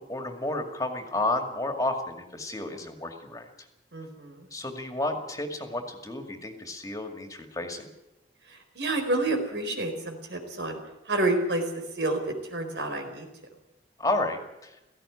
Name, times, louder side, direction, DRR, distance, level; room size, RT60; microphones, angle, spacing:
voice 1, 0.0-3.5 4.5-7.9 14.0-14.8, left 2 dB, 20° left, 5 dB, 2.2 m, -31 dB
voice 2, 3.9-4.4 8.8-10.8 11.1-11.6 12.0-12.2 12.5-13.3, right 2 dB, 80° right, 5 dB, 4.5 m, -28 dB
17.5 x 15.5 x 9.9 m, 0.92 s
head